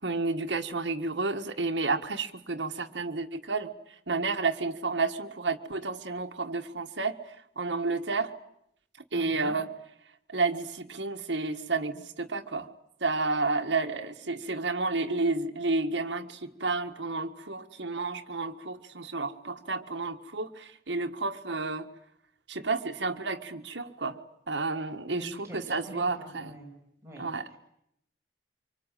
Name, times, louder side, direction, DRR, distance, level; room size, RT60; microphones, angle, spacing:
voice 1, 0.0-3.7 4.1-7.1 7.5-8.3 9.1-9.7 10.3-12.7 13.0-21.9 22.5-24.2 24.5-26.5 27.2-27.6, right 3 dB, 85° right, 5 dB, 1.7 m, -31 dB
voice 2, 9.1-9.6 25.1-26.7 27.0-27.3 27.5-27.6, equal, 15° right, 0 dB, 7.4 m, -45 dB
25.5 x 24.5 x 9.3 m, 0.75 s
head